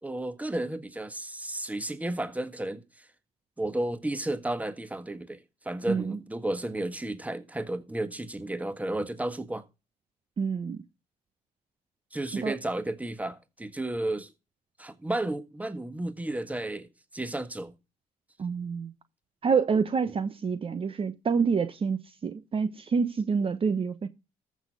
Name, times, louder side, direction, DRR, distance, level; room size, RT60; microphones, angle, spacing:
voice 1, 0.0-3.1 3.6-9.6 12.1-14.3 14.8-17.7 20.0-20.2, right 1 dB, 10° right, 1.6 m, -33 dB
voice 2, 5.9-6.2 10.4-10.8 12.4-12.5 18.4-18.9 19.4-24.1, right 5 dB, 40° right, 1.0 m, -27 dB
14.0 x 6.3 x 5.4 m
cardioid pair, 80°, 15 cm